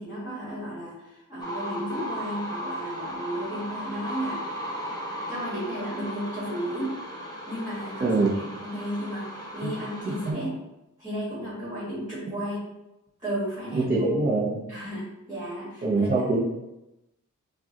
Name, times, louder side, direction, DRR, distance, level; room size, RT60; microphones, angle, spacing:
voice 1, 0.0-4.4 5.3-7.0 7.4-10.6 11.0-12.7 13.2-14.1 14.7-16.3, equal, 10° right, -9 dB, 1.4 m, -34 dB
sound 1, 1.4-10.3, equal, 10° left, 0.8 m, -36 dB
voice 2, 8.0-8.3 9.6-9.7 10.1-10.4 13.7-14.6 15.8-16.4, right 3 dB, 30° right, -7 dB, 0.7 m, -24 dB
4.6 x 2.3 x 2.8 m, 0.93 s
wide cardioid pair, 110°, 31 cm